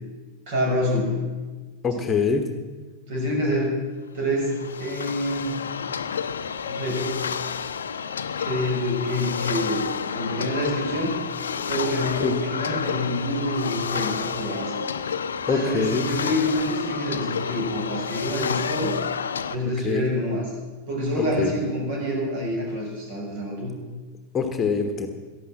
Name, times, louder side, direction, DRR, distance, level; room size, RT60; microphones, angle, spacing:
voice 1, 0.5-1.2 1.9-2.1 3.1-3.8 4.1-5.6 6.7-7.2 8.4-11.2 11.7-14.7 15.4-19.0 19.5-20.5 20.9-23.8, equal, 50° right, -1 dB, 5.7 m, -27 dB
voice 2, 1.8-2.5 12.2-12.3 15.5-16.0 19.8-20.0 21.2-21.5 24.3-25.1, left 5 dB, 20° left, 6 dB, 1.3 m, -24 dB
sound 1, 4.4-19.6, left 6 dB, 70° left, 0.6 m, -30 dB
13.5 x 11.5 x 7.5 m, 1.3 s
figure-of-eight pair, 90°, 0 cm